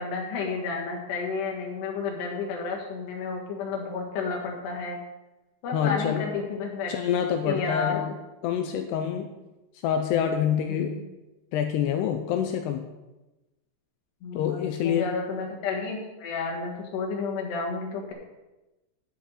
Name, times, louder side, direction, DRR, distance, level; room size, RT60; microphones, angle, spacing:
voice 1, 0.0-5.0 5.6-6.9 7.5-8.0 10.7-11.0 14.2-18.1, left 4 dB, 70° left, 0 dB, 3.7 m, -31 dB
voice 2, 5.7-6.2 6.9-8.1 8.4-9.3 9.8-11.0 11.5-12.9 14.3-15.1, left 8 dB, 85° left, 5 dB, 2.4 m, -26 dB
12.5 x 7.8 x 4.2 m, 1.0 s
omnidirectional pair, 5.3 m